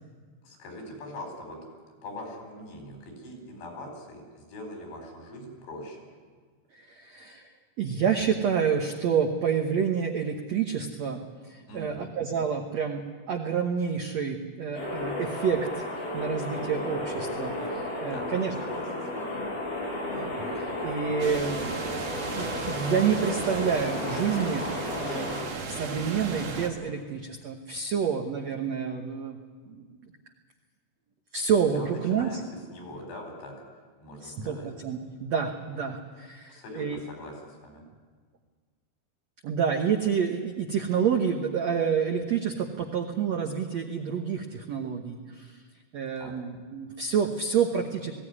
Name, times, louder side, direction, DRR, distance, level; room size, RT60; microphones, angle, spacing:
voice 1, 0.4-1.6 2.0-6.0 11.7-12.1 18.1-19.4 31.8-32.4 32.7-33.6 34.0-34.7 36.5-37.8 46.2-46.3, left 1 dB, 90° left, 2 dB, 6.9 m, -42 dB
voice 2, 6.8-7.5 7.8-15.9 16.1-18.8 20.1-21.7 22.0-25.4 25.7-29.4 29.7-29.8 31.3-32.4 34.2-37.0 39.4-45.6 45.9-48.1, right 7 dB, 85° right, 3 dB, 1.5 m, -28 dB
sound 1, 14.8-25.4, left 1 dB, 60° left, 8.2 m, -33 dB
sound 2, 21.2-26.7, right 4 dB, 45° right, 2.1 m, -36 dB
20.5 x 16.5 x 9.8 m, 1.5 s
omnidirectional pair, 4.9 m